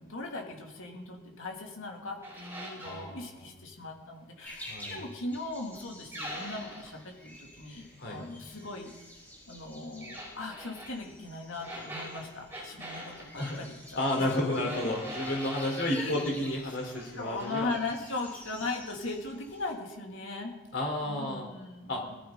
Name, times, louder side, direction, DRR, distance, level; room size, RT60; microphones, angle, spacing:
voice 1, 0.0-8.9 9.5-14.3 15.9-16.2 16.7-20.6 21.0-22.2, left 2 dB, 70° left, 0 dB, 2.9 m, -39 dB
sound 1, 2.2-3.1 6.1-6.9 10.0-10.9 11.6-13.6 14.6-16.0 16.5-17.1 17.4-17.6, equal, 10° right, 4.5 m, -42 dB
voice 2, 2.8-3.4 4.7-5.0 8.0-8.2 13.4-13.6 14.0-17.7 20.7-21.5 21.9-22.0, left 1 dB, 55° left, 0 dB, 4.1 m, -31 dB
sound 2, 4.4-19.7, left 1 dB, 10° left, 4.4 m, -50 dB
21.0 x 14.0 x 4.0 m, 1.1 s
head